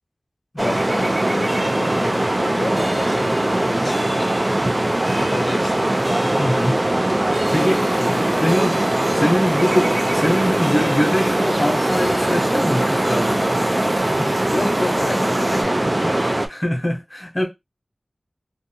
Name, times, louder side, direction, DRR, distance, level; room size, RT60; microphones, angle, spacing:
voice 1, 0.6-4.0 4.9-5.8 7.5-8.6 9.1-9.5 14.5-16.1, left 2 dB, 85° left, 0.5 m, -31 dB
sound 1, 0.6-14.0, right 1 dB, 15° right, 0.9 m, -32 dB
sound 2, 0.6-16.5, right 1 dB, 35° right, 0.3 m, -21 dB
voice 2, 6.4-6.8 7.5-7.8 8.4-8.8 9.1-14.3 16.0-17.5, equal, 25° left, 0.8 m, -23 dB
sound 3, 7.4-15.6, right 1 dB, 60° right, 0.7 m, -35 dB
2.6 x 2.3 x 2.6 m
wide cardioid pair, 65°, 0 cm